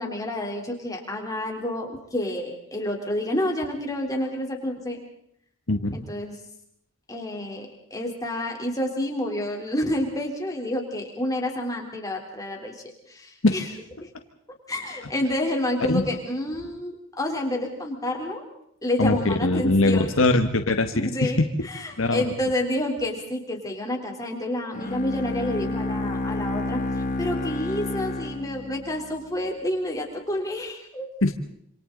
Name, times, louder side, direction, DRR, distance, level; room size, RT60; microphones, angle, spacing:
voice 1, 0.0-5.0 5.9-6.3 7.1-13.6 14.0-14.1 14.7-18.4 18.8-20.1 20.9-26.8 27.2-31.1, left 1 dB, 15° left, 1 dB, 3.6 m, -29 dB
voice 2, 19.0-21.5 22.0-22.2 31.2-31.3, left 2 dB, 70° left, 6 dB, 1.5 m, -21 dB
Bowed string instrument, 24.7-29.2, left 2 dB, 35° left, 1.7 m, -29 dB
27.5 x 27.5 x 4.0 m, 0.69 s
head